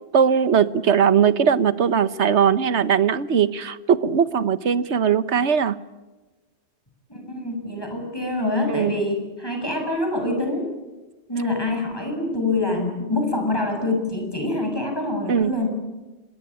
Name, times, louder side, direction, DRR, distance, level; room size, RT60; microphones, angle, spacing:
voice 1, 0.1-5.8 8.7-8.9 15.3-15.5, right 7 dB, 90° right, 15 dB, 1.4 m, -19 dB
voice 2, 7.1-10.7 11.3-15.7, left 2 dB, 20° left, 3 dB, 7.2 m, -25 dB
27.0 x 21.0 x 8.6 m, 1.2 s
omnidirectional pair, 1.1 m